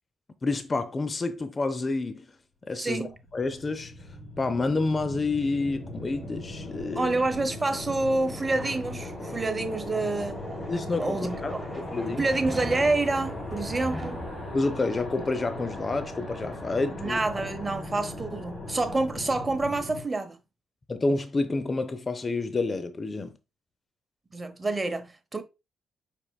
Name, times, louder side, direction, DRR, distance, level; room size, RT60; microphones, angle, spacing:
voice 1, 0.4-2.3 2.7-4.1 4.4-7.1 10.7-12.3 14.5-17.2 20.9-23.3, left 3 dB, 35° left, 0.6 m, -29 dB
voice 2, 2.8-3.1 7.0-10.4 11.0-11.4 12.2-14.2 17.0-20.4 24.3-25.4, right 2 dB, 30° right, 0.9 m, -28 dB
sound 1, 3.0-20.0, left 1 dB, 60° left, 3.2 m, -38 dB
sound 2, 7.4-18.7, equal, 5° right, 1.6 m, -42 dB
5.3 x 4.3 x 2.3 m
hypercardioid pair, 45°, 0 cm